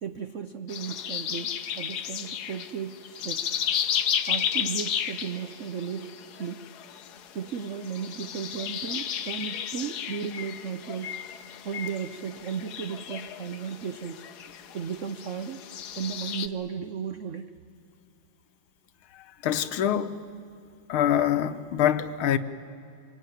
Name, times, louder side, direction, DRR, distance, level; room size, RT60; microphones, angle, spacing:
voice 1, 0.0-3.5 4.3-6.7 7.3-11.2 11.6-14.2 14.7-15.6 16.0-17.6, right 7 dB, 70° right, 0.7 m, -35 dB
sound 1, 0.7-16.5, left 9 dB, 60° left, 1.2 m, -33 dB
voice 2, 19.4-20.2 20.9-22.4, left 10 dB, 75° left, 1.7 m, -24 dB
25.5 x 21.0 x 9.3 m
omnidirectional pair, 2.4 m